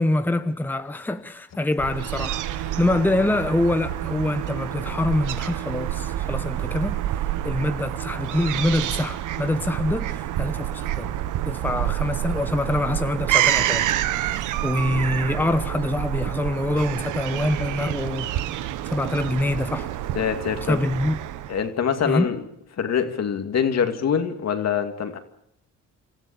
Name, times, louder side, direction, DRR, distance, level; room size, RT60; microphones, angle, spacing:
voice 1, 0.0-7.0 7.4-11.1 11.5-18.3 18.8-19.9 20.7-21.2 22.0-22.3, left 1 dB, 5° left, 1.0 m, -25 dB
Fowl / Gull seagull, 1.8-21.7, right 12 dB, 85° right, 1.1 m, -28 dB
voice 2, 20.1-20.8 21.5-22.4 22.8-25.2, left 7 dB, 60° left, 2.4 m, -24 dB
26.5 x 14.5 x 8.7 m
cardioid pair, 90°, 30 cm